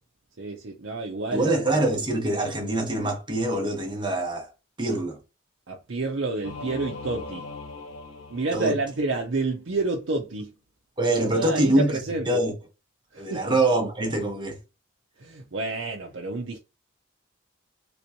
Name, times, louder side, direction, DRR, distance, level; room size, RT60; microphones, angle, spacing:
voice 1, 0.4-1.6 5.7-7.5 8.3-10.5 11.3-12.4 13.1-13.5 15.2-16.6, right 3 dB, 65° right, 0.6 m, -29 dB
voice 2, 1.3-4.5 4.8-5.2 8.5-8.8 11.0-11.9 12.3-12.5 13.2-14.6, right 1 dB, 25° right, 0.9 m, -24 dB
Singing / Musical instrument, 6.4-9.3, left 3 dB, 90° left, 0.7 m, -40 dB
3.4 x 3.0 x 2.7 m
head